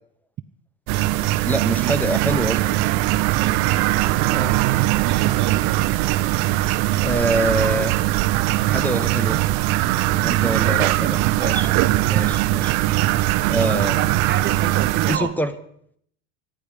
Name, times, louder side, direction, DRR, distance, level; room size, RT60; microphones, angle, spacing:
sound 1, 0.9-15.2, right 17 dB, 60° right, 0.9 m, -20 dB
voice 1, 1.4-2.8 4.3-4.6 7.0-8.0 8.7-9.4 10.2-11.7 12.1-12.7 13.5-13.9 15.1-15.5, right 1 dB, 5° left, 12 dB, 0.9 m, -25 dB
voice 2, 5.0-5.9 10.4-11.6 13.6-15.3, right 10 dB, 25° right, 11 dB, 0.7 m, -30 dB
24.5 x 10.5 x 5.1 m, 0.66 s
supercardioid pair, 125°, 41 cm